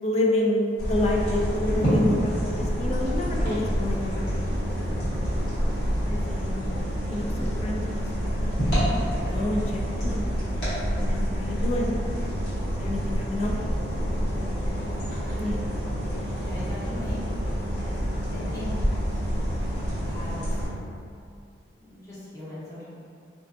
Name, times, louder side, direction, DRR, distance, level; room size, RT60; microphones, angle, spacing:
voice 1, 0.0-4.4 5.1-5.2 6.1-6.7 7.1-7.8 8.2-8.5 9.3-10.7 11.0-11.9 12.7-13.7 14.1-14.2 15.4-15.7, left 1 dB, 40° left, -1 dB, 0.3 m, -29 dB
sound 1, 0.8-20.7, equal, 70° left, 1.1 m, -27 dB
voice 2, 16.4-17.2 17.6-17.7 18.3-18.7 20.0-20.5 21.9-22.9, left 1 dB, 20° left, -10 dB, 0.7 m, -40 dB
2.4 x 2.4 x 2.4 m, 2.4 s
head